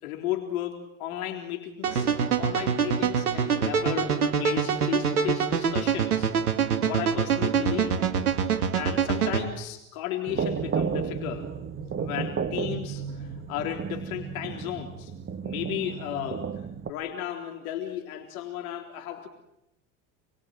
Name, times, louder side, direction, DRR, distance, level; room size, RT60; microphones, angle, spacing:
voice 1, 0.0-2.1 2.4-6.3 6.8-8.0 8.7-11.5 12.0-15.1 15.4-16.5 16.9-19.3, left 11 dB, 75° left, 3 dB, 3.8 m, -34 dB
sound 1, 1.8-9.5, right 7 dB, 90° right, 2.7 m, -25 dB
sound 2, 10.3-16.9, right 6 dB, 30° right, 2.1 m, -32 dB
28.5 x 23.0 x 7.8 m, 0.85 s
hypercardioid pair, 95°, 43 cm